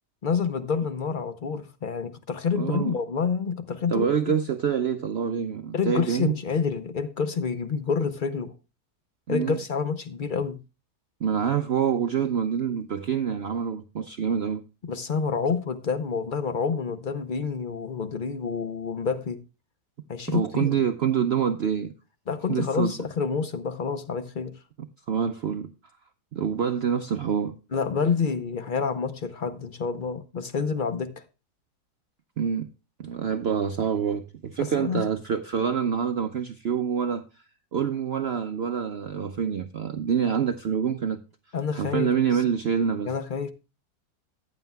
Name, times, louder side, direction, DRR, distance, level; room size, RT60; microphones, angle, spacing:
voice 1, 0.2-4.1 5.7-8.5 9.3-10.6 14.8-19.4 20.1-20.8 22.3-24.5 27.7-31.1 34.6-35.1 41.5-42.1 43.0-43.5, left 5 dB, 55° left, 0.5 m, -28 dB
voice 2, 2.6-2.9 3.9-6.3 9.3-9.6 11.2-14.6 20.3-21.9 22.5-22.9 25.1-25.7 26.3-27.6 32.4-32.7 33.0-37.2 37.7-41.2 41.7-43.1, right 7 dB, 75° right, 0.5 m, -26 dB
14.5 x 9.5 x 2.3 m
omnidirectional pair, 1.8 m